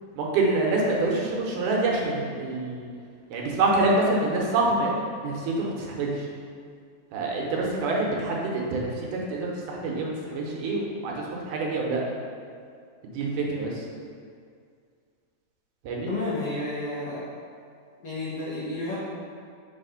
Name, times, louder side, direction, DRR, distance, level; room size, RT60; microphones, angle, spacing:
voice 1, 0.2-2.9 3.3-4.9 5.2-6.3 7.1-12.0 13.1-13.8 15.8-16.1, right 2 dB, 75° right, -2 dB, 2.3 m, -26 dB
voice 2, 16.1-17.2 18.0-19.0, left 2 dB, 60° left, -9 dB, 1.6 m, -31 dB
5.5 x 4.2 x 5.5 m, 2.2 s
omnidirectional pair, 3.7 m